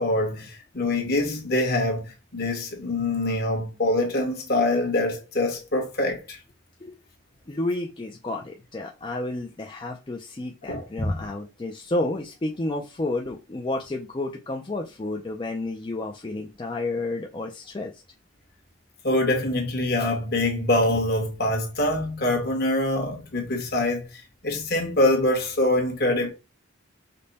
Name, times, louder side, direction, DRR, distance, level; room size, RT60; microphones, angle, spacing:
voice 1, 0.0-6.4 10.7-11.2 19.0-24.0 24.4-26.3, left 1 dB, 50° left, 1.3 m, -24 dB
voice 2, 7.5-18.0, left 2 dB, 25° left, 0.4 m, -31 dB
5.2 x 2.2 x 4.1 m
head